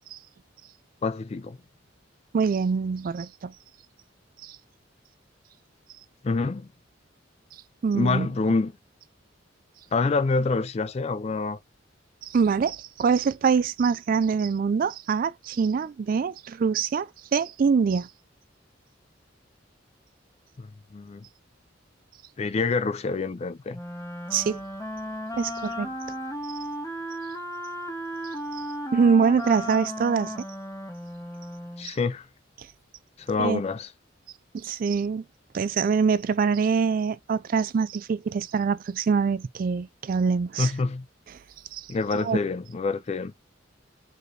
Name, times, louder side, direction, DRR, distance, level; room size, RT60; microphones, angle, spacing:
voice 1, 1.0-1.6 6.2-6.7 7.9-8.7 9.9-11.6 20.6-20.7 20.9-21.3 22.4-23.8 31.8-32.3 33.2-33.9 40.6-41.0 41.9-43.3, left 3 dB, 35° left, 0.4 m, -26 dB
voice 2, 2.3-3.5 4.4-4.6 7.8-8.3 12.2-18.1 24.3-24.6 25.3-25.9 28.9-30.5 33.4-33.6 34.5-35.2 35.5-40.7 41.7-41.9 42.2-42.4, right 5 dB, 45° right, 0.3 m, -24 dB
Wind instrument woodwind instrument, 23.7-31.9, equal, 15° left, 1.2 m, -35 dB
4.8 x 4.1 x 2.6 m
head